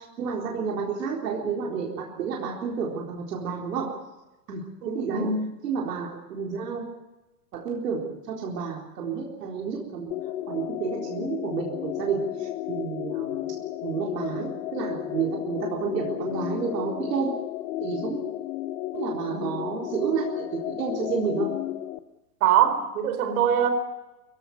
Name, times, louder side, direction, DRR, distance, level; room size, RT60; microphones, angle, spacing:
voice 1, 0.0-4.0 4.5-5.3 5.6-6.9 7.5-10.1 10.5-17.4 17.8-18.2 18.9-21.5, right 6 dB, 85° right, -1 dB, 4.2 m, -30 dB
voice 2, 4.8-5.5 19.3-19.6 22.4-23.7, right 8 dB, 65° right, 9 dB, 4.6 m, -23 dB
sound 1, 10.1-22.0, left 14 dB, 50° left, 1.2 m, -33 dB
23.5 x 16.5 x 9.3 m, 1.1 s
supercardioid pair, 155°, 47 cm